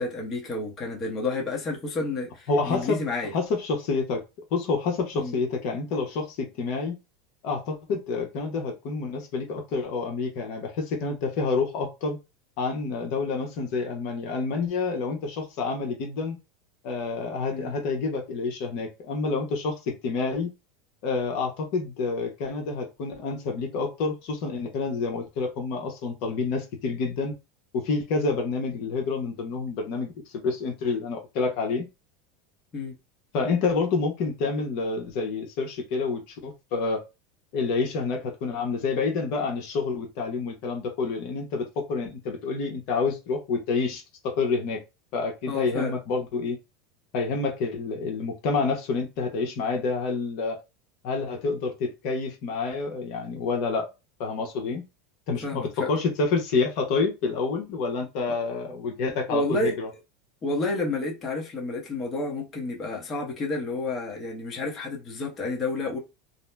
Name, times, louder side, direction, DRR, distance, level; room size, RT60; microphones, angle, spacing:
voice 1, 0.0-3.3 5.2-5.4 17.5-17.7 32.7-32.9 45.5-46.0 55.4-55.9 58.3-58.4 59.3-59.8 60.4-66.0, left 2 dB, 25° left, 0.9 m, -30 dB
voice 2, 2.5-3.0 3.3-4.2 4.5-6.9 7.4-12.2 12.6-16.4 16.8-20.5 21.0-27.3 27.7-30.1 30.4-31.8 33.3-37.0 37.5-44.8 45.1-46.6 47.1-50.6 51.0-53.9 54.2-54.8 55.3-59.9, left 4 dB, 60° left, 0.9 m, -28 dB
2.6 x 2.1 x 3.3 m
supercardioid pair, 135°, 0 cm